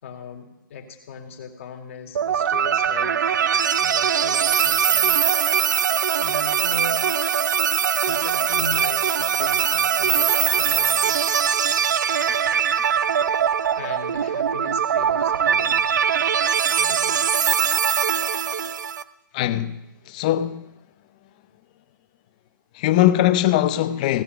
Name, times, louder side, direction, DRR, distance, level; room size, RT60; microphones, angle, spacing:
voice 1, 0.0-3.4 3.8-5.2 6.2-7.1 7.9-11.2 13.8-15.8 16.8-17.3, left 5 dB, 35° left, 2.3 m, -38 dB
sound 1, 2.1-19.0, right 8 dB, 55° right, 0.7 m, -21 dB
voice 2, 19.3-19.8 20.1-20.6 22.8-24.2, left 13 dB, 20° left, 0.5 m, -20 dB
17.0 x 7.1 x 9.1 m
hypercardioid pair, 165°, 11 cm